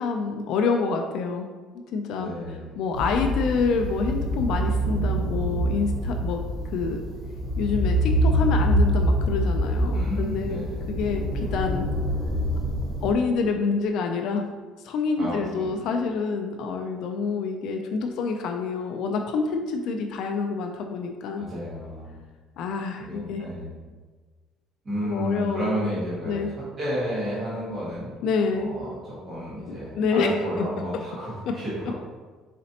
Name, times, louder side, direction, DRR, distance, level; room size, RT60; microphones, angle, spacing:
voice 1, 0.0-1.5 1.9-2.3 2.8-6.4 6.7-7.0 7.6-10.6 10.9-11.9 13.0-14.4 14.8-21.5 22.6-23.4 25.0-25.9 26.3-26.5 28.2-28.7 30.0-30.3, left 4 dB, 55° left, 4 dB, 0.3 m, -27 dB
voice 2, 2.2-2.8 9.9-10.9 15.2-15.7 21.3-22.2 23.0-23.8 24.8-28.2 28.5-32.0, equal, 25° right, -10 dB, 1.3 m, -32 dB
sound 1, 2.9-13.1, equal, 50° right, 0.9 m, -25 dB
4.1 x 4.0 x 2.8 m, 1.4 s
cardioid pair, 170°, 0 cm